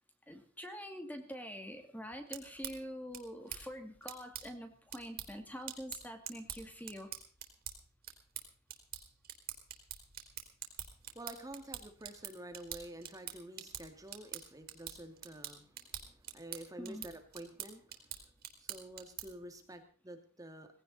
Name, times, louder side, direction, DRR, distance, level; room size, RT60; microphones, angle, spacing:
voice 1, 0.3-7.1 16.8-17.1, equal, 10° left, 6 dB, 2.1 m, -45 dB
sound 1, 2.1-19.5, right 10 dB, 45° right, 3.7 m, -47 dB
voice 2, 11.1-18.2 18.6-20.7, right 1 dB, 15° right, 6 dB, 2.1 m, -49 dB
18.5 x 17.0 x 4.0 m, 0.39 s
head